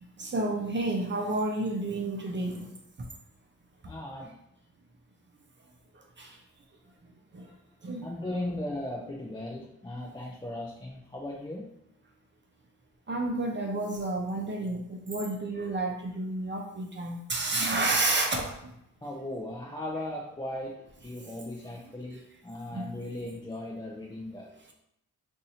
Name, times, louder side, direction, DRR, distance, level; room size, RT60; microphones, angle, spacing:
voice 1, 0.2-2.7 6.2-6.4 7.3-7.5 7.8-8.0 13.1-18.4 22.7-22.9, right 2 dB, 35° right, 1 dB, 0.7 m, -30 dB
voice 2, 3.9-4.3 8.0-11.7 19.0-20.8 21.0-24.5, left 1 dB, 15° left, -2 dB, 0.5 m, -37 dB
2.7 x 2.6 x 4.2 m, 0.77 s
cardioid pair, 65°, 32 cm